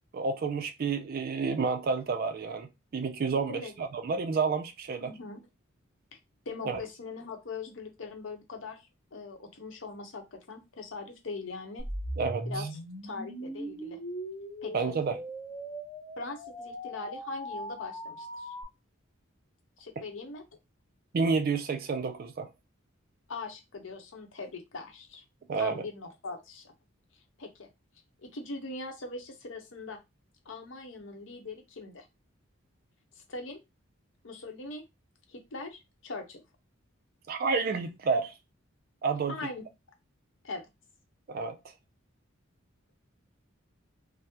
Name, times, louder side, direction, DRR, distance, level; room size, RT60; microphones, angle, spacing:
voice 1, 0.1-5.1 6.6-6.8 12.2-12.7 14.7-15.2 20.0-20.1 21.1-22.5 25.5-25.8 37.3-38.3 39.0-39.4 41.3-41.6, right 4 dB, 45° right, 0.3 m, -30 dB
voice 2, 5.0-5.5 6.5-11.8 12.5-12.7 13.0-14.0 14.6-14.9 16.2-18.5 19.8-20.4 23.3-25.2 25.6-26.7 27.4-27.7 28.2-30.0 30.5-32.1 33.3-33.6 34.2-34.8 35.3-36.4 39.3-39.6 40.4-40.7, left 3 dB, 65° left, 0.7 m, -41 dB
sound 1, 11.8-18.6, equal, 20° left, 1.0 m, -39 dB
3.4 x 2.0 x 2.8 m
head